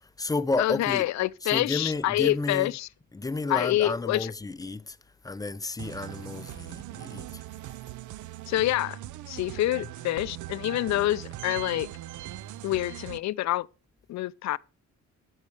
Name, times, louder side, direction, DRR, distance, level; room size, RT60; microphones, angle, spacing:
voice 1, 0.0-1.1 1.4-2.7 3.1-5.0 5.2-7.4, left 3 dB, 10° left, 0.4 m, -31 dB
voice 2, 0.6-2.9 3.5-4.3 8.5-9.0 9.3-11.9 12.6-13.7 14.1-14.6, left 15 dB, 65° left, 0.5 m, -27 dB
sound 1, 5.8-13.2, right 15 dB, 80° right, 0.5 m, -40 dB
11.5 x 5.5 x 4.8 m
cardioid pair, 90°, 30 cm